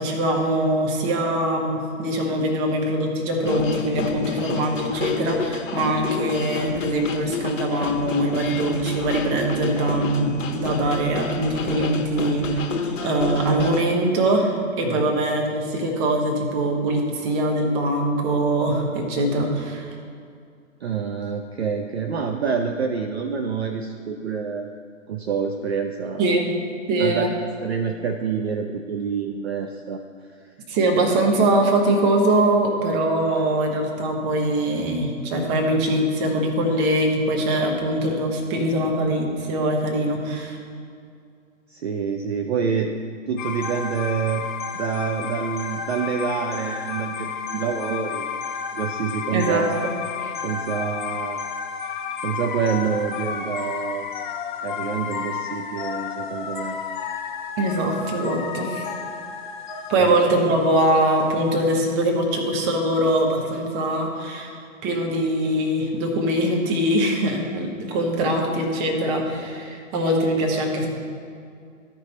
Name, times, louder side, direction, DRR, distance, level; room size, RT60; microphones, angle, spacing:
voice 1, 0.0-19.9 26.2-26.5 26.9-27.3 30.7-40.6 49.3-49.6 50.2-50.3 57.6-58.9 59.9-64.5 64.8-70.9, right 1 dB, 20° right, 1 dB, 1.0 m, -22 dB
sound 1, 3.4-13.8, left 4 dB, 65° left, 1.0 m, -29 dB
voice 2, 14.8-15.2 20.8-24.8 25.1-26.4 27.0-30.0 30.4-30.5 41.7-43.0 43.3-44.5 44.7-48.3 48.7-49.7 50.4-51.4 52.2-54.1 54.6-56.8 59.9-60.2, right 6 dB, 50° right, 5 dB, 0.5 m, -27 dB
sound 2, 43.4-61.7, left 6 dB, 35° left, 0.6 m, -32 dB
12.5 x 5.4 x 4.1 m, 2.3 s
figure-of-eight pair, 125°, 40 cm